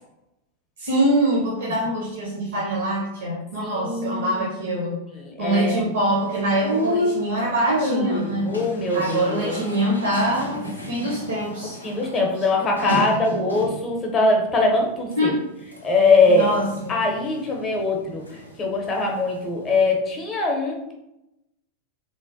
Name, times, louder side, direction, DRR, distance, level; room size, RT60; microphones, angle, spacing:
voice 1, 0.8-5.0 5.4-8.5 8.9-11.8 12.8-13.1 15.2-15.4 16.3-17.0, right 1 dB, 60° right, -3 dB, 0.6 m, -24 dB
voice 2, 3.6-4.5 5.2-5.7 8.5-9.6 11.8-15.3 15.8-16.5 16.9-20.9, left 3 dB, 25° left, 0 dB, 0.6 m, -22 dB
sound 1, 6.0-13.9 14.4-15.2 15.6-18.5 18.8-20.0, equal, 85° left, 0.4 m, -31 dB
3.1 x 2.2 x 2.6 m, 0.88 s
figure-of-eight pair, 90°, 0 cm